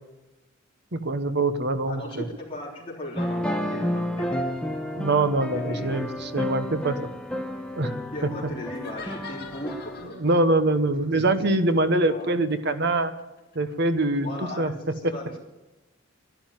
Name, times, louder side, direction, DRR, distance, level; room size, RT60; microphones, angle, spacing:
voice 1, 0.9-2.2 4.9-7.1 7.8-8.0 10.2-13.1 13.5-14.3 14.6-14.7 15.0-15.1, right 2 dB, 55° right, 10 dB, 1.1 m, -24 dB
voice 2, 1.8-4.6 5.5-6.4 8.1-10.2 11.2-11.3 11.8-12.3 14.2-15.4, left 1 dB, 25° left, -4 dB, 3.6 m, -38 dB
sound 1, 3.2-10.1, equal, 5° left, 1.0 m, -31 dB
sound 2, 8.7-10.4 11.3-14.4, left 5 dB, 50° left, 2.3 m, -45 dB
12.0 x 11.5 x 9.1 m, 1.1 s
head